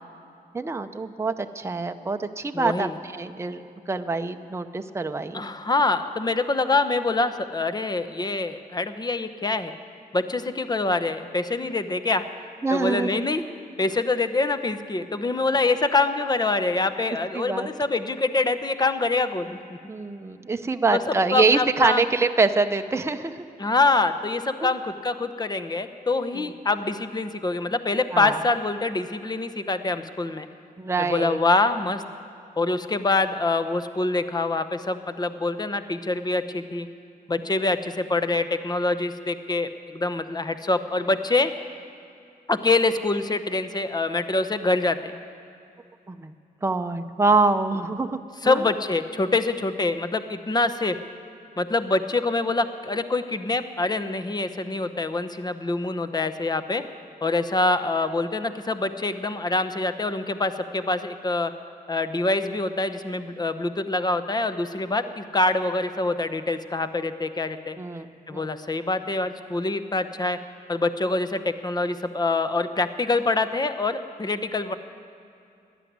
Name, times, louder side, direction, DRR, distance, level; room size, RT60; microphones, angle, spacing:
voice 1, 0.5-5.4 12.6-13.2 17.3-17.7 19.9-23.4 24.6-24.7 26.3-26.4 28.1-28.4 30.8-31.4 46.1-46.3 46.6-48.6 67.8-68.5, right 3 dB, 15° right, 7 dB, 0.7 m, -25 dB
voice 2, 2.5-2.9 5.3-9.8 10.1-12.2 12.7-13.4 13.8-19.6 20.9-22.0 23.6-30.5 31.0-32.0 32.6-36.9 37.3-41.5 42.5-45.2 48.4-51.0 51.6-56.8 57.2-61.5 61.9-67.8 68.3-70.4 70.7-74.7, left 3 dB, 25° left, 10 dB, 0.9 m, -25 dB
14.0 x 11.0 x 9.5 m, 2.6 s
cardioid pair, 75°, 16 cm